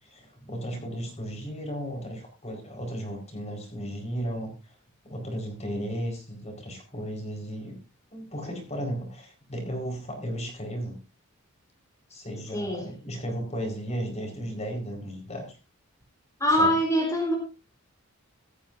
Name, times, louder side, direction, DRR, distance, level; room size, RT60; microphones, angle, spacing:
voice 1, 0.0-4.7 5.0-7.7 8.1-11.0 12.1-15.5 16.6-16.7, equal, 30° left, 3 dB, 4.5 m, -35 dB
voice 2, 12.5-12.9 16.4-17.4, equal, 15° left, 0 dB, 4.1 m, -24 dB
16.0 x 13.5 x 2.6 m, 0.31 s
head